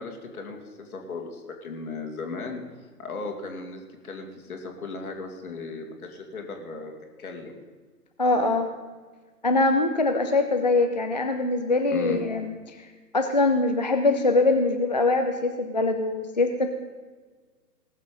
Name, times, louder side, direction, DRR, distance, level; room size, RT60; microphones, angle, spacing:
voice 1, 0.0-2.6 3.0-6.9 7.2-7.6 11.9-12.2, left 4 dB, 60° left, 2 dB, 2.5 m, -36 dB
voice 2, 8.2-8.7 9.4-12.8 13.1-16.7, left 2 dB, 30° left, 6 dB, 0.4 m, -23 dB
18.5 x 7.4 x 5.3 m, 1.4 s
figure-of-eight pair, 125°, 49 cm